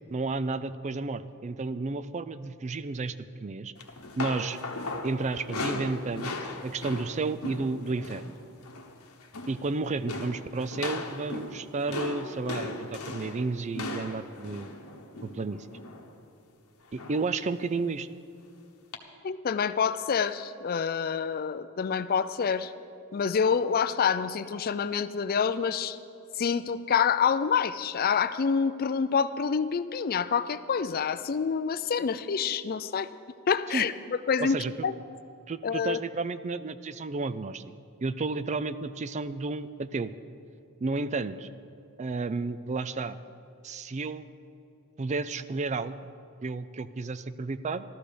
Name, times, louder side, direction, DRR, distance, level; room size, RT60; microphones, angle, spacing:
voice 1, 0.1-3.2 3.4-3.7 4.2-4.6 5.0-6.4 6.6-8.4 9.5-14.7 15.2-15.7 16.9-18.1 33.7-33.8 34.4-34.7 35.5-37.6 38.0-40.1 40.8-41.5 42.0-43.2 43.6-44.3 45.0-46.0 46.4-47.8, right 3 dB, 30° right, 14 dB, 0.4 m, -32 dB
sound 1, 3.8-8.3 8.6-8.9 9.2-9.7 10.1-16.1 17.0-17.3 17.7-17.9 18.9-19.0, left 2 dB, 75° left, 1.2 m, -37 dB
voice 2, 19.2-22.7 23.1-26.0 26.4-33.1 33.5-34.9 35.6-36.0, left 6 dB, 40° left, 13 dB, 0.4 m, -27 dB
14.0 x 13.0 x 5.1 m, 2.7 s
head